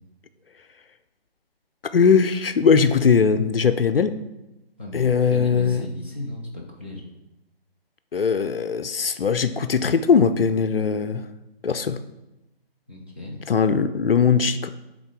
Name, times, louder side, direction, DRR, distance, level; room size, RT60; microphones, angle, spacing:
voice 1, 1.9-4.2 4.9-5.8 8.1-11.2 11.6-12.0 13.5-14.7, left 6 dB, 65° left, 11 dB, 0.4 m, -20 dB
voice 2, 4.8-7.0 12.9-13.4, left 2 dB, 10° right, -5 dB, 0.4 m, -36 dB
7.8 x 3.6 x 3.7 m, 0.94 s
figure-of-eight pair, 145°, 31 cm